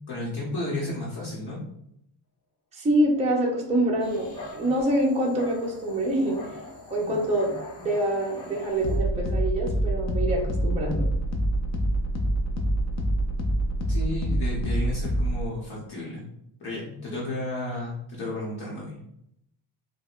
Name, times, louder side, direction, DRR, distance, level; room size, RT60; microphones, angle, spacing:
voice 1, 0.1-1.6 13.9-16.2 16.6-19.0, left 2 dB, 50° left, -5 dB, 1.0 m, -32 dB
voice 2, 2.7-6.6 6.9-11.1, right 1 dB, 15° right, -2 dB, 0.6 m, -26 dB
Dog, 4.0-9.0, left 2 dB, 10° left, 0.9 m, -44 dB
sound 1, 6.8-15.5, right 1 dB, 35° left, 0.5 m, -27 dB
4.6 x 2.2 x 2.4 m, 0.77 s
cardioid pair, 155°, 49 cm